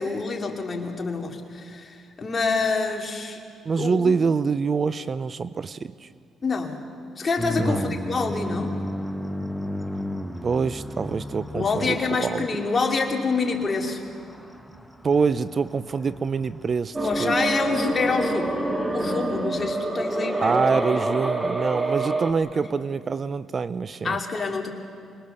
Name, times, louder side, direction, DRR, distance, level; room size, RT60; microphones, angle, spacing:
voice 1, 0.0-3.4 3.8-4.2 6.4-6.8 7.2-8.8 11.5-14.0 17.0-18.5 18.9-20.6 22.5-22.7 24.0-24.7, left 4 dB, 35° left, 2 dB, 2.8 m, -27 dB
voice 2, 3.6-6.1 7.6-8.0 10.4-12.5 15.0-17.4 20.4-24.2, right 5 dB, 40° right, 16 dB, 0.5 m, -25 dB
sound 1, 7.4-16.8, left 1 dB, ahead, 1.1 m, -34 dB
sound 2, 16.9-22.3, right 2 dB, 20° right, 2.1 m, -26 dB
25.5 x 21.5 x 6.9 m, 2.3 s
cardioid pair, 90°, 0 cm